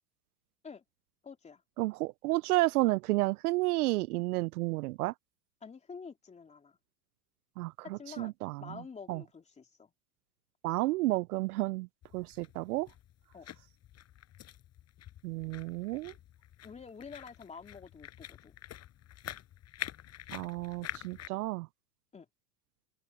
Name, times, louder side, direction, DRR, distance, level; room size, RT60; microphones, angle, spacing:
voice 1, 1.2-1.6 5.6-6.8 7.8-8.3 8.6-9.9 13.3-13.5 16.6-18.6 22.1-22.3, left 5 dB, 15° left, 3.0 m, -48 dB
voice 2, 1.8-5.1 7.6-8.8 9.1-9.2 10.6-11.9 12.1-12.9 15.2-16.1 20.3-21.7, right 20 dB, 65° right, 0.6 m, -31 dB
sound 1, 12.0-21.3, left 12 dB, 30° left, 7.4 m, -47 dB
open air
supercardioid pair, 130°, 48 cm